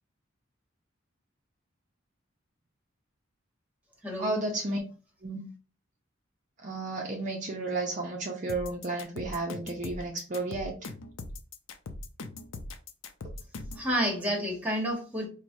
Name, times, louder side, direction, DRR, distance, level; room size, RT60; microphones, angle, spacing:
voice 1, 4.2-4.8 5.2-5.4 6.6-10.7, right 2 dB, 40° right, 0.5 m, -32 dB
sound 1, 8.5-13.9, left 3 dB, 85° left, 0.5 m, -40 dB
voice 2, 13.7-15.3, equal, 10° right, 1.0 m, -29 dB
4.6 x 2.1 x 2.6 m
head